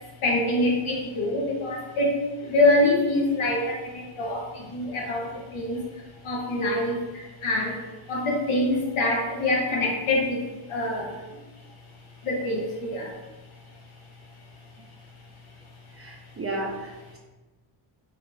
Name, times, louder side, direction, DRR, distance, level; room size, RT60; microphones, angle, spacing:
voice 1, 0.2-2.2 2.4-3.7 4.2-4.4 4.7-5.3 5.5-5.8 6.2-7.0 7.4-7.7 8.1-10.4 10.7-11.1 12.3-13.1, left 2 dB, 80° left, -1 dB, 1.0 m, -24 dB
voice 2, 16.0-17.2, right 2 dB, 30° right, -1 dB, 0.5 m, -33 dB
2.9 x 2.4 x 3.9 m, 1.2 s
wide cardioid pair, 145°, 48 cm